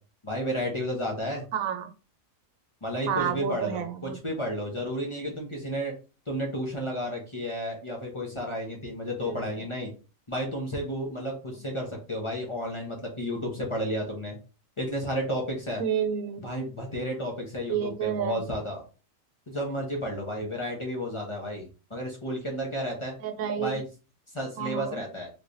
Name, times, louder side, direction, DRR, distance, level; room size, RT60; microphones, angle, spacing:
voice 1, 0.2-1.4 2.8-5.9 6.3-9.9 10.3-14.4 14.8-15.8 16.4-18.8 19.5-23.1 23.6-23.9 24.3-25.3, equal, 25° left, -1 dB, 0.8 m, -32 dB
voice 2, 1.5-1.9 3.1-4.2 9.2-9.6 15.8-16.5 17.7-18.4 23.2-23.8 24.6-25.0, right 8 dB, 90° right, 8 dB, 1.0 m, -30 dB
3.4 x 3.1 x 2.6 m, 0.33 s
omnidirectional pair, 1.4 m